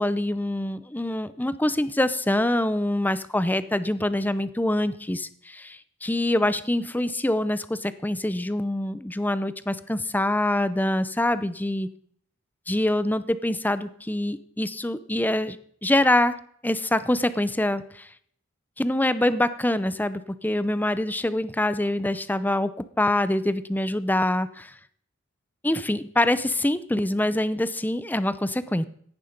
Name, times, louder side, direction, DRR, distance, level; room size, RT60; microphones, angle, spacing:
voice 1, 0.0-11.9 12.7-15.6 15.8-18.1 18.8-24.7 25.6-28.8, left 1 dB, 10° left, 14 dB, 0.6 m, -25 dB
15.5 x 10.5 x 5.2 m, 0.63 s
head